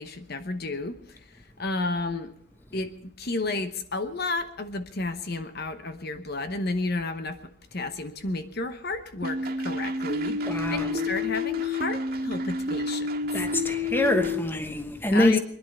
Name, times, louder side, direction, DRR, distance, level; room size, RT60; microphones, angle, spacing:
voice 1, 0.0-2.3 2.7-13.7 15.1-15.4, left 3 dB, 50° left, 1.0 m, -32 dB
sound 1, 9.2-14.4, left 2 dB, 50° right, 1.8 m, -29 dB
voice 2, 10.3-10.9 13.3-15.4, left 1 dB, 10° left, 1.1 m, -25 dB
24.0 x 10.5 x 5.5 m
head